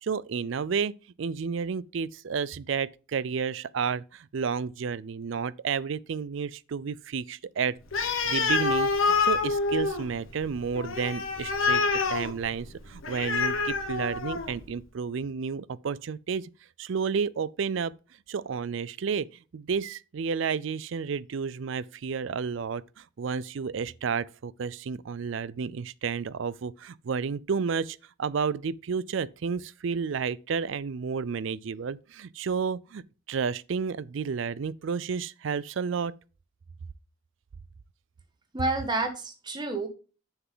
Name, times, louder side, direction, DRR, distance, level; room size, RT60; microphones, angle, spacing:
voice 1, 0.0-7.8 8.3-11.8 12.1-16.5 16.8-17.9 18.3-19.3 19.5-33.0 33.3-36.1, right 6 dB, 65° right, 0.4 m, -31 dB
Animal, 7.9-14.6, left 4 dB, 75° left, 1.6 m, -27 dB
voice 2, 38.5-39.9, right 2 dB, 20° right, 1.3 m, -29 dB
7.2 x 6.7 x 3.7 m
head